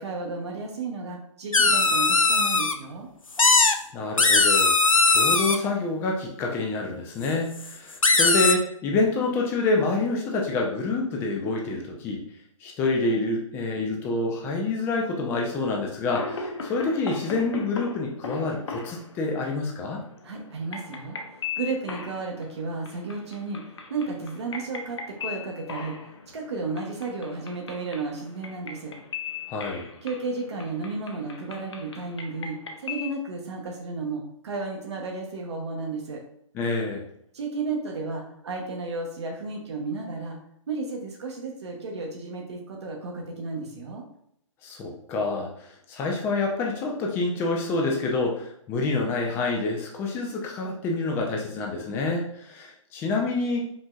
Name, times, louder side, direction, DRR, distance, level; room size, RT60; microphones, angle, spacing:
voice 1, 0.0-3.1 20.2-23.6 23.9-26.0 26.3-28.9 30.0-36.2 37.3-40.4 40.7-44.0, right 3 dB, 55° right, 0 dB, 0.9 m, -33 dB
sound 1, 1.5-2.7 3.4-3.7 4.2-5.6 7.6-7.7 8.0-8.5, left 3 dB, 90° left, 0.4 m, -19 dB
voice 2, 3.9-4.7 5.1-12.2 12.6-20.0 29.5-29.9 36.5-37.0 44.6-53.6, left 3 dB, 15° left, 0 dB, 0.4 m, -27 dB
sound 2, 16.1-33.1, left 5 dB, 55° left, 0.7 m, -39 dB
5.1 x 2.7 x 2.4 m, 0.71 s
figure-of-eight pair, 125°, 17 cm